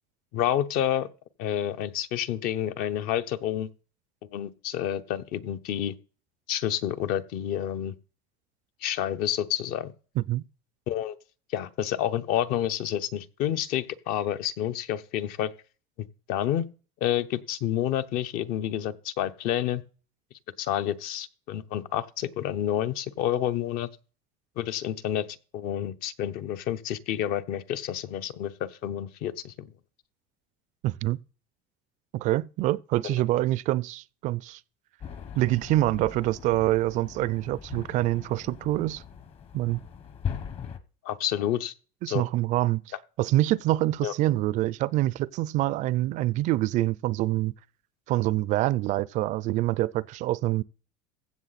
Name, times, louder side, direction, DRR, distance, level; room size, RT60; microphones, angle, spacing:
voice 1, 0.3-1.1 1.4-3.7 4.3-5.9 6.5-7.9 8.8-9.9 10.9-11.2 11.5-15.5 16.3-16.7 17.0-19.8 20.6-23.9 24.6-25.3 25.5-29.7 33.0-33.1 41.0-41.7 42.1-42.2 44.0-44.1, left 11 dB, 60° left, 0.9 m, -29 dB
voice 2, 30.8-31.2 32.1-34.6 35.4-39.0 39.5-39.8 42.0-42.8 43.2-47.5 48.1-50.6, right 16 dB, 45° right, 0.4 m, -26 dB
sound 1, 35.0-40.8, left 7 dB, 35° left, 1.0 m, -40 dB
15.5 x 6.4 x 4.1 m
cardioid pair, 165°, 17 cm